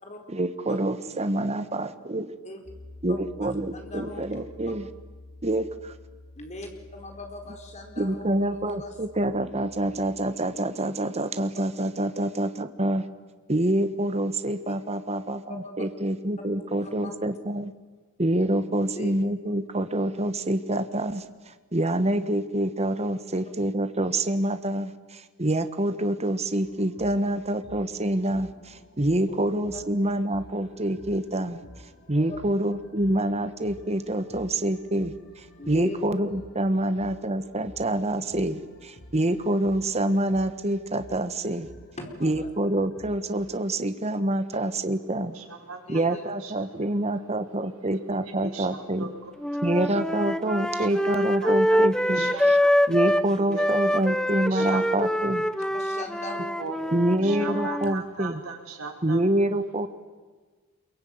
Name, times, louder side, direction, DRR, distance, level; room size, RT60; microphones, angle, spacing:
voice 1, 0.3-2.3 3.0-4.9 5.4-5.9 8.0-13.1 13.5-17.7 18.2-31.6 32.1-41.7 42.2-45.4 45.9-49.1 49.6-52.6 52.9-55.5 56.9-58.4 59.0-59.9, right 1 dB, 30° right, 10 dB, 1.4 m, -26 dB
sound 1, 2.6-10.3, left 2 dB, 75° left, 6.3 m, -48 dB
voice 2, 3.4-4.4 6.4-8.9 14.6-14.7 15.5-15.7 16.8-17.1 18.8-19.1 29.3-29.4 29.7-29.8 31.4-31.5 32.2-32.4 35.6-36.0 42.0-42.5 45.9-46.2 49.9-50.0 55.7-56.8, left 2 dB, 35° left, 4 dB, 4.4 m, -40 dB
sound 2, 26.6-43.6, equal, 50° left, 7.5 m, -51 dB
voice 3, 45.3-45.8 46.1-46.2 46.4-46.5 48.4-49.1 49.5-49.6 50.8-51.8 52.1-52.8 53.4-54.0 54.5-55.0 56.6-56.9 57.2-59.2, right 4 dB, 80° right, 2 dB, 5.4 m, -38 dB
sound 3, 49.4-53.3 53.5-57.9, equal, 5° left, 0.9 m, -25 dB
27.0 x 23.0 x 9.6 m, 1.4 s
head